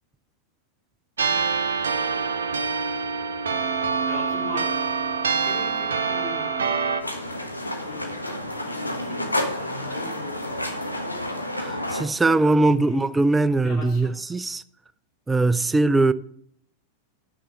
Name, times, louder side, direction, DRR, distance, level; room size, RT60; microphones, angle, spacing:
sound 1, 1.2-7.0, right 5 dB, 70° right, 0.7 m, -25 dB
voice 1, 4.1-4.8 5.4-6.9 7.8-11.3 11.7-13.1 13.6-14.1, left 2 dB, 30° left, 2.3 m, -40 dB
sound 2, 7.0-12.0, left 1 dB, 85° left, 1.2 m, -30 dB
voice 2, 11.6-14.6 15.3-16.1, right 2 dB, 10° right, 0.3 m, -21 dB
9.1 x 4.4 x 6.3 m
figure-of-eight pair, 90°, 0 cm